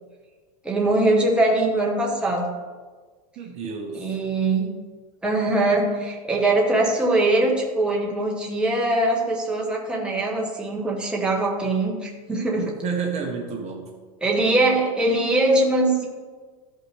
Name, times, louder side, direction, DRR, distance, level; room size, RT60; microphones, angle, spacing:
voice 1, 0.6-2.5 3.9-4.7 5.2-12.7 14.2-16.1, right 2 dB, 5° right, -3 dB, 1.3 m, -22 dB
voice 2, 3.4-4.2 12.6-13.9, right 5 dB, 35° right, 2 dB, 1.1 m, -30 dB
14.0 x 5.7 x 3.4 m, 1.5 s
supercardioid pair, 145°, 20 cm